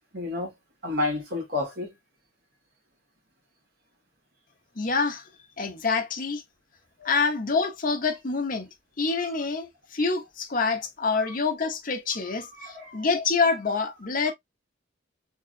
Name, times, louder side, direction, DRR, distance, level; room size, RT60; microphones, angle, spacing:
voice 1, 0.1-0.5 0.8-1.9 7.0-7.3 11.2-11.4 12.2-13.1 14.3-14.4, left 2 dB, 50° right, 1.9 m, -31 dB
voice 2, 4.8-5.2 5.6-6.4 7.0-8.7 9.0-14.3, left 4 dB, 45° left, 0.8 m, -26 dB
3.6 x 3.1 x 2.4 m
head